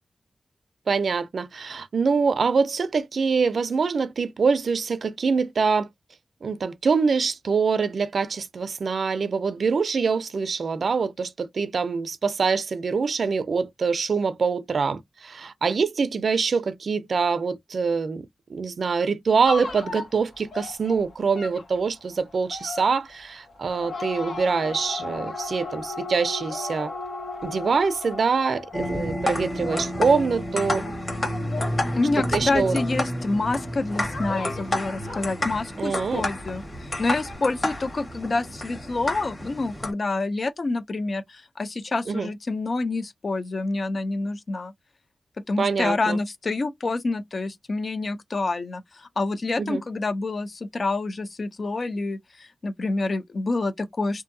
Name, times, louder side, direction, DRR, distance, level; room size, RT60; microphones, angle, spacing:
voice 1, 0.9-5.9 6.4-26.9 27.4-30.8 32.2-32.8 35.8-36.3 42.1-42.3 45.6-46.2 49.6-49.8, right 5 dB, 65° right, 0.4 m, -24 dB
sound 1, 19.4-36.1 36.4-37.0 37.2-37.3, left 3 dB, 85° left, 1.1 m, -37 dB
sound 2, 28.7-39.9, left 1 dB, 30° left, 1.3 m, -29 dB
voice 2, 31.9-44.7 45.5-54.2, left 3 dB, 45° left, 0.4 m, -27 dB
2.6 x 2.6 x 2.6 m
wide cardioid pair, 130°, 0 cm